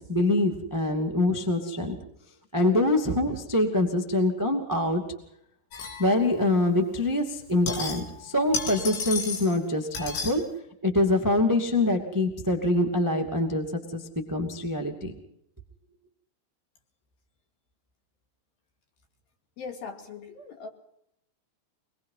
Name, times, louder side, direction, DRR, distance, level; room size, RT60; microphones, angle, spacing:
voice 1, 0.0-1.9 2.5-5.0 6.0-10.4 10.8-14.0 14.3-15.1, left 2 dB, 20° right, 3 dB, 0.5 m, -25 dB
sound 1, 5.7-6.5 7.4-8.2 8.5-9.6 9.9-10.4, left 4 dB, 70° left, 6.1 m, -33 dB
voice 2, 19.6-20.7, left 5 dB, 55° left, 4 dB, 3.8 m, -40 dB
24.0 x 21.0 x 5.8 m, 0.75 s
omnidirectional pair, 5.7 m